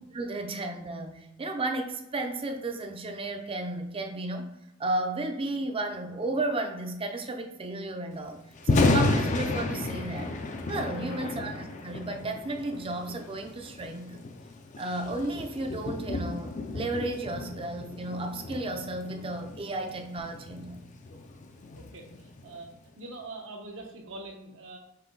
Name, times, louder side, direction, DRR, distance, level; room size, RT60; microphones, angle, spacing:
voice 1, 0.1-4.5 4.8-8.4 8.7-10.3 10.7-14.2 14.8-20.8, right 2 dB, 25° right, 5 dB, 0.5 m, -33 dB
Thunder, 8.5-22.7, left 2 dB, 35° left, 0.4 m, -32 dB
voice 2, 10.9-11.3 21.7-22.1 22.4-24.8, right 2 dB, 70° right, 2 dB, 0.9 m, -43 dB
5.6 x 2.2 x 3.8 m, 0.87 s
head